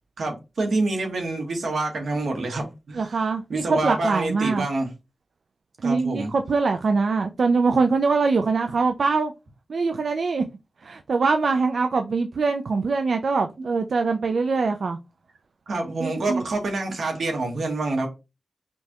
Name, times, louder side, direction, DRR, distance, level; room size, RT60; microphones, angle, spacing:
voice 1, 0.2-3.2 3.5-4.9 5.8-6.3 15.7-18.1, right 2 dB, 90° right, 1.2 m, -27 dB
voice 2, 2.9-4.7 5.8-9.3 9.7-10.4 10.8-15.0 16.0-16.4, right 4 dB, 70° right, 0.3 m, -23 dB
5.2 x 2.3 x 2.8 m
wide cardioid pair, 105°, 0 cm